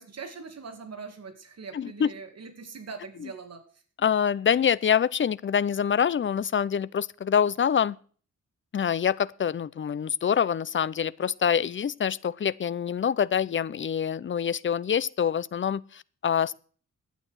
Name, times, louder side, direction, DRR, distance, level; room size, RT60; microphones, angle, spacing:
voice 1, 0.0-3.6, right 5 dB, 55° right, 2.2 m, -42 dB
voice 2, 1.7-2.1 4.0-8.0 8.7-16.5, left 8 dB, 40° left, 0.5 m, -25 dB
11.5 x 9.2 x 6.2 m
wide cardioid pair, 125°, 31 cm